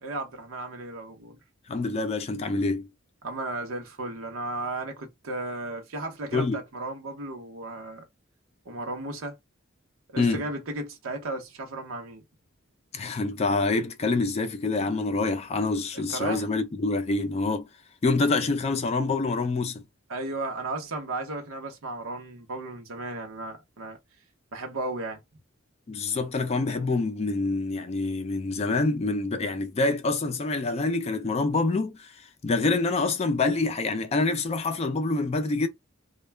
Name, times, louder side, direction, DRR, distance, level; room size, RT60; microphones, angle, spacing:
voice 1, 0.0-1.4 3.2-8.0 8.7-9.4 10.1-12.2 15.9-16.5 20.1-24.0 24.5-25.2, right 2 dB, 90° right, 0.7 m, -34 dB
voice 2, 1.7-2.9 6.3-6.6 10.2-10.4 12.9-17.7 18.0-19.8 25.9-35.7, left 3 dB, 30° left, 0.4 m, -26 dB
2.2 x 2.0 x 3.2 m
head